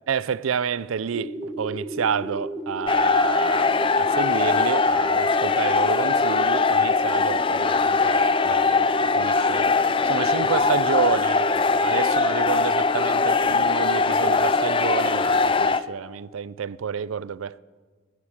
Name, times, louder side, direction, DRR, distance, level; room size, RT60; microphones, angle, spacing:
voice 1, 0.1-9.7 10.0-11.5 11.8-17.6, right 6 dB, 80° right, 0.4 m, -29 dB
sound 1, 1.1-15.7, right 1 dB, 5° left, 1.0 m, -33 dB
sound 2, 2.9-15.8, left 4 dB, 25° left, 0.4 m, -21 dB
19.5 x 9.9 x 7.3 m
head